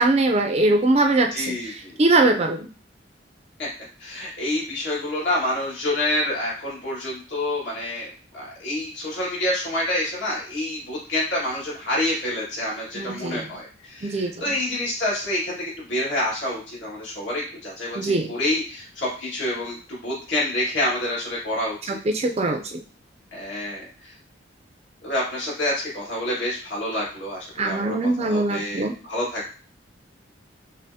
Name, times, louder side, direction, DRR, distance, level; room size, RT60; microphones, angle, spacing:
voice 1, 0.0-2.7 12.9-13.5 14.0-14.4 18.0-18.3 21.9-22.8 27.6-28.9, right 2 dB, 35° right, 5 dB, 0.4 m, -22 dB
voice 2, 1.3-2.0 4.0-22.0 23.3-23.9 25.0-29.5, left 1 dB, 70° left, -5 dB, 1.8 m, -28 dB
5.3 x 2.0 x 2.7 m, 0.37 s
head